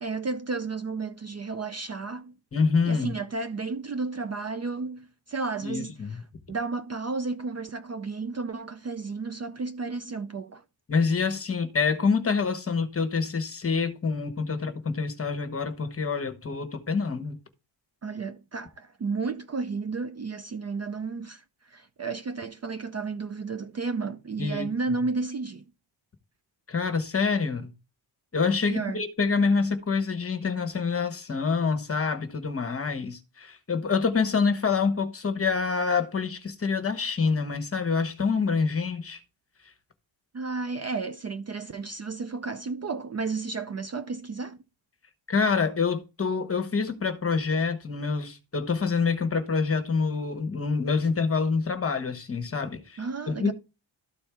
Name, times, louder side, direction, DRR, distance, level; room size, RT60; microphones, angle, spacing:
voice 1, 0.0-2.3 2.8-6.2 6.5-10.6 18.0-25.6 28.7-29.0 40.3-44.6 53.0-53.5, right 4 dB, 35° right, 0.4 m, -32 dB
voice 2, 2.5-3.2 5.6-6.2 10.9-17.4 24.4-24.7 26.7-27.7 28.3-39.2 45.3-53.5, left 5 dB, 30° left, 1.1 m, -26 dB
13.0 x 4.4 x 3.4 m
wide cardioid pair, 175°, 47 cm